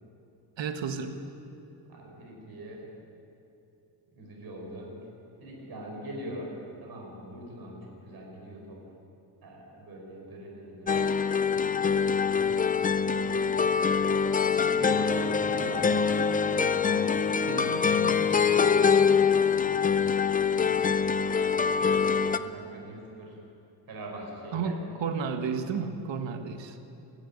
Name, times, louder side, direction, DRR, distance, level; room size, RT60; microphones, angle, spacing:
voice 1, 0.6-1.2 17.5-18.7 24.5-26.8, right 5 dB, 80° right, 7 dB, 1.7 m, -33 dB
voice 2, 1.9-3.0 4.1-4.9 5.4-8.8 9.4-14.3 14.7-16.2 19.5-20.9 21.4-23.4 23.9-24.7, right 1 dB, 55° right, -1 dB, 5.4 m, -43 dB
sound 1, 10.9-22.4, left 6 dB, 20° left, 0.4 m, -24 dB
sound 2, 14.2-19.1, right 1 dB, 5° right, 1.7 m, -44 dB
26.5 x 11.5 x 9.8 m, 3.0 s
wide cardioid pair, 180°, 44 cm